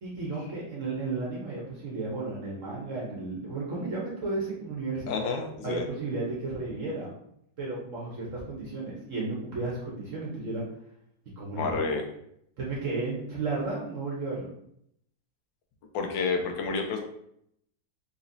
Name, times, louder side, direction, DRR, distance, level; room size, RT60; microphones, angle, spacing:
voice 1, 0.0-5.1 5.6-7.1 7.6-10.6 11.4-11.8 12.6-14.5, right 3 dB, 55° right, -4 dB, 0.9 m, -33 dB
voice 2, 5.1-5.8 11.6-12.0 15.9-17.0, left 4 dB, 80° left, 3 dB, 1.3 m, -29 dB
3.9 x 2.9 x 2.6 m, 0.72 s
omnidirectional pair, 2.0 m